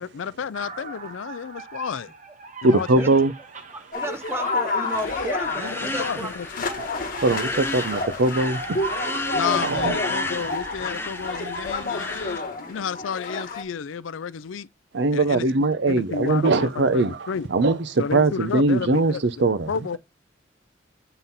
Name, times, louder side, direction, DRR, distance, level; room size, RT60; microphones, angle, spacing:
voice 1, 0.0-2.1 2.6-3.2 5.6-6.7 9.3-12.4 12.7-14.7 15.1-17.5 18.0-19.2 19.7-20.0, left 6 dB, 85° left, 0.4 m, -31 dB
sound 1, 0.5-12.8, right 3 dB, 40° right, 1.1 m, -39 dB
voice 2, 2.6-3.3 7.2-8.8 9.6-10.0 14.9-19.7, right 2 dB, 65° right, 0.7 m, -21 dB
voice 3, 3.7-6.3 6.6-6.8, right 1 dB, 15° right, 0.9 m, -33 dB
sound 2, 3.9-13.6, left 3 dB, 45° left, 1.3 m, -30 dB
sound 3, 4.9-12.4, left 2 dB, 10° left, 0.6 m, -33 dB
7.5 x 3.9 x 4.0 m
head